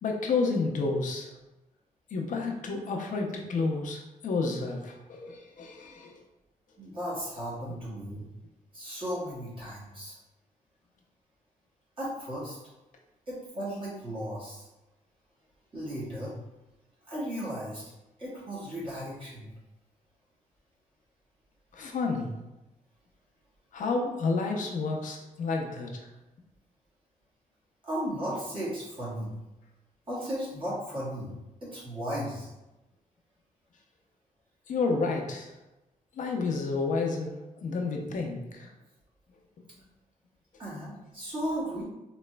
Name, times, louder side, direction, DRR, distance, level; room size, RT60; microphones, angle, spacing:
voice 1, 0.0-1.3 2.1-6.2 21.7-22.3 23.7-26.1 34.7-35.5 36.1-37.3 37.6-38.7, left 3 dB, 65° left, 1 dB, 0.6 m, -30 dB
voice 2, 6.8-8.3 8.7-10.2 12.0-12.6 13.3-14.7 15.7-16.3 17.1-17.9 18.2-19.5 27.8-29.3 30.1-32.5 40.6-41.8, equal, 35° right, -7 dB, 1.5 m, -35 dB
4.0 x 3.0 x 2.2 m, 0.99 s
wide cardioid pair, 130°, 14 cm